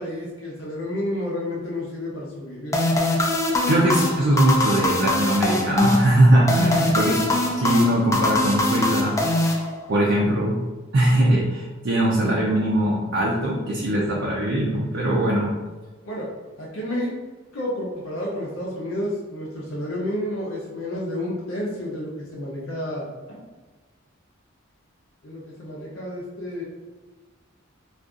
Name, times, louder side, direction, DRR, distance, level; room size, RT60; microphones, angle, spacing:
voice 1, 0.0-2.8 16.0-16.3 16.6-17.1 17.5-23.4 25.2-26.6, left 1 dB, 75° left, -4 dB, 0.6 m, -30 dB
sound 1, 2.7-10.1, left 1 dB, 15° left, 0.3 m, -23 dB
voice 2, 3.7-9.2 9.9-10.6 10.9-15.5, right 1 dB, 60° right, -3 dB, 0.5 m, -21 dB
2.5 x 2.3 x 3.6 m, 1.3 s
head